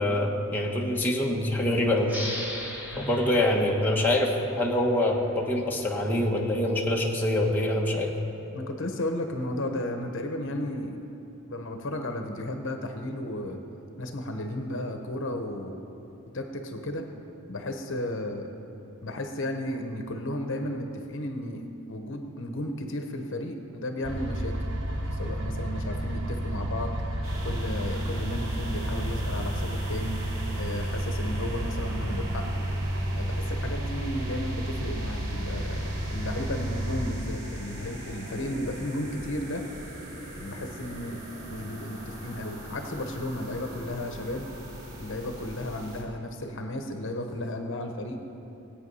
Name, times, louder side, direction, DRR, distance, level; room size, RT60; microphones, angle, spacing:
voice 1, 0.0-2.1 2.9-8.1, left 1 dB, 10° left, -3 dB, 1.3 m, -25 dB
sound 1, 2.0-5.3, left 1 dB, 10° right, 1.8 m, -39 dB
voice 2, 8.5-11.0 11.5-13.6 14.0-15.8 16.3-17.1 17.5-18.5 19.0-21.6 21.9-24.6 25.1-26.9 27.4-30.2 30.5-32.6 33.1-39.7 40.3-41.2 41.5-44.5 45.0-48.2, left 1 dB, 60° left, 5 dB, 1.0 m, -34 dB
sound 2, 24.0-37.1, right 1 dB, 60° right, 1.3 m, -31 dB
sound 3, 27.2-46.0, right 1 dB, 80° right, 3.2 m, -41 dB
18.0 x 8.7 x 5.5 m, 2.9 s
head